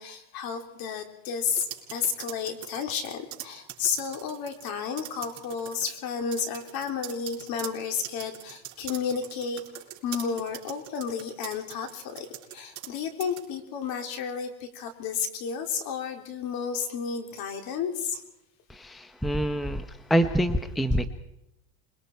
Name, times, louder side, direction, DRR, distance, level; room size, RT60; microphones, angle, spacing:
voice 1, 0.0-9.6 10.0-12.3 12.5-18.2, left 6 dB, 50° left, 5 dB, 3.4 m, -32 dB
sound 1, 1.5-4.7 5.0-5.9 6.3-12.9 13.2-13.4, right 13 dB, 40° right, 5.0 m, -42 dB
voice 2, 18.7-21.1, right 1 dB, ahead, 9 dB, 0.8 m, -26 dB
27.0 x 22.0 x 4.6 m, 0.88 s
supercardioid pair, 135°, 44 cm